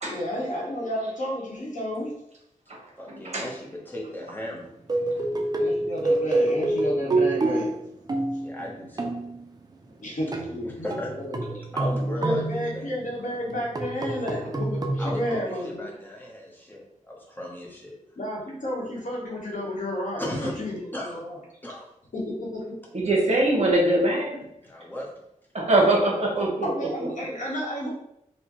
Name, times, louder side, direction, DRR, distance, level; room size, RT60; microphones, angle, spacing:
voice 1, 0.1-2.1 5.6-7.8 10.0-11.6 12.2-15.9 18.2-21.4 22.1-22.6 26.6-27.9, left 1 dB, 70° left, -3 dB, 1.1 m, -31 dB
voice 2, 3.0-4.7 5.2-5.3 8.4-9.1 10.6-11.1 11.7-12.8 15.0-17.9 20.2-20.5 20.9-21.2 21.6-21.8 24.6-25.1, left 1 dB, 15° left, -2 dB, 0.8 m, -36 dB
sound 1, 4.9-9.4 10.3-10.7 10.9-13.1 13.5-15.4, right 2 dB, 30° right, 0.4 m, -27 dB
voice 3, 22.9-24.4 25.5-26.7, right 1 dB, 55° right, -3 dB, 1.1 m, -22 dB
4.3 x 2.2 x 3.0 m, 0.78 s
wide cardioid pair, 120°, 13 cm